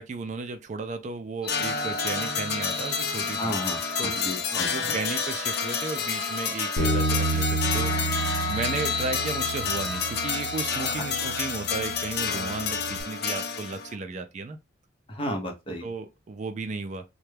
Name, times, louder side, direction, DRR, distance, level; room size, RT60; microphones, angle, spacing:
voice 1, 0.0-3.5 4.0-14.6 15.8-17.0, right 4 dB, 40° right, 0.3 m, -34 dB
sound 1, 1.4-10.9, left 3 dB, 5° right, 0.9 m, -35 dB
sound 2, 1.5-13.9, left 5 dB, 55° left, 0.5 m, -30 dB
voice 2, 3.4-3.9 4.2-4.9 11.2-11.3 15.1-15.9, equal, 30° left, 0.8 m, -33 dB
Bass guitar, 6.8-13.0, right 3 dB, 90° left, 0.8 m, -31 dB
3.3 x 2.2 x 3.2 m
head